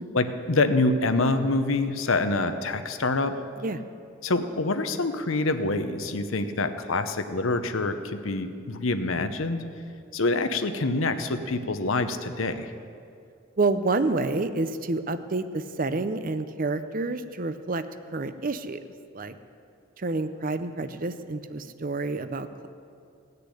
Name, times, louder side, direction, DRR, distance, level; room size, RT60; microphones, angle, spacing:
voice 1, 0.1-3.3 4.2-9.6 10.1-12.7, left 2 dB, 70° left, 9 dB, 0.9 m, -26 dB
voice 2, 13.6-17.9 18.1-18.8 19.1-19.4 20.0-22.7, right 3 dB, 40° right, 11 dB, 0.6 m, -28 dB
17.0 x 6.8 x 10.0 m, 2.5 s
head